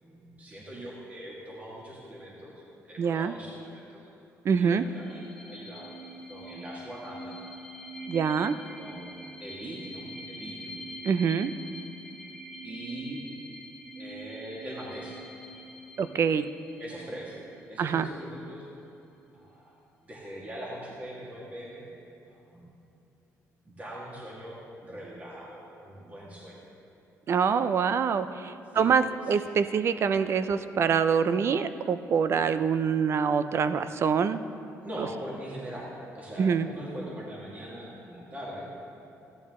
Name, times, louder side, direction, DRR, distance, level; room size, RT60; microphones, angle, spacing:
voice 1, 0.0-4.0 4.5-5.2 5.5-5.9 6.3-7.4 8.7-9.0 9.4-10.9 12.6-13.3 14.0-15.2 16.8-17.4 17.7-18.6 19.3-19.8 20.0-21.9 22.3-22.6 23.7-26.7 28.7-28.9 34.8-38.7, right 1 dB, 25° right, -5 dB, 2.0 m, -41 dB
voice 2, 3.0-3.3 4.4-4.8 8.1-8.6 11.0-11.5 16.0-16.5 17.8-18.1 27.3-34.4 36.4-36.7, right 6 dB, 50° right, 12 dB, 0.5 m, -25 dB
sound 1, 4.8-18.1, right 1 dB, 10° left, 1.1 m, -45 dB
14.5 x 10.5 x 3.7 m, 2.9 s
cardioid pair, 110°, 6 cm